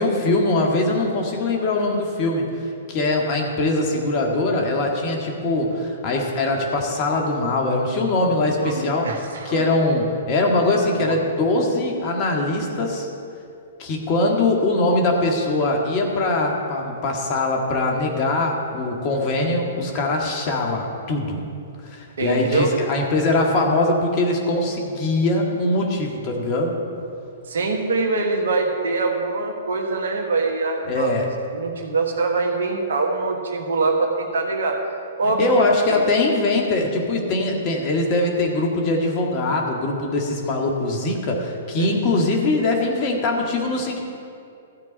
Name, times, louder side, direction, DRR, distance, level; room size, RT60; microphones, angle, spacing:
voice 1, 0.0-2.5 2.9-9.1 9.5-13.1 13.8-21.4 21.9-26.8 30.9-31.3 35.4-44.0, left 2 dB, 40° left, 1 dB, 1.9 m, -22 dB
voice 2, 8.6-9.6 11.0-11.2 22.2-22.7 27.5-31.1 31.5-34.8 35.2-36.0 41.8-42.0, right 3 dB, 75° right, 2 dB, 1.4 m, -24 dB
13.5 x 4.6 x 8.7 m, 2.5 s
hypercardioid pair, 120°, 0 cm